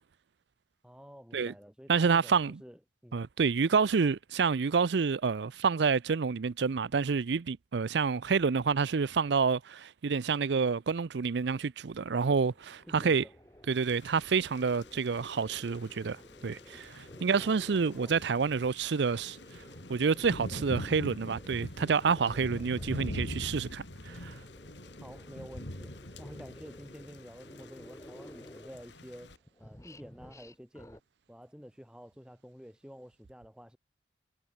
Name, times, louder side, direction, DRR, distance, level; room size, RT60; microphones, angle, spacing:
voice 1, 0.8-3.2 12.9-13.3 17.4-18.1 25.0-25.9 26.2-31.0 31.3-33.8, equal, 5° right, 5.3 m, -50 dB
voice 2, 1.9-2.6 3.1-13.2 13.7-19.4 19.9-24.3, right 5 dB, 70° right, 0.5 m, -28 dB
sound 1, 11.9-18.5 18.9-23.3 23.8-29.0 29.3-31.0, left 1 dB, 15° left, 1.4 m, -54 dB
Thunder / Rain, 13.7-29.4, left 1 dB, 75° left, 3.9 m, -44 dB
head